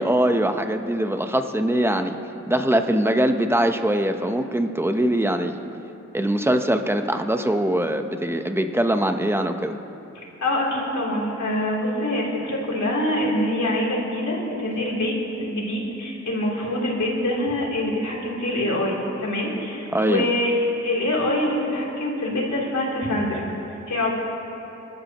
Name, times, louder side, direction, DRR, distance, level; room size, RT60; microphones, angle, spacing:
voice 1, 0.0-2.2 2.5-5.6 6.1-9.7 19.9-20.3, right 1 dB, 10° right, 6 dB, 1.0 m, -22 dB
voice 2, 10.2-15.1 15.4-20.5 20.8-23.4 23.9-24.1, left 1 dB, 75° left, -4 dB, 3.6 m, -25 dB
25.0 x 12.5 x 3.1 m, 2.9 s
cardioid pair, 55°, 29 cm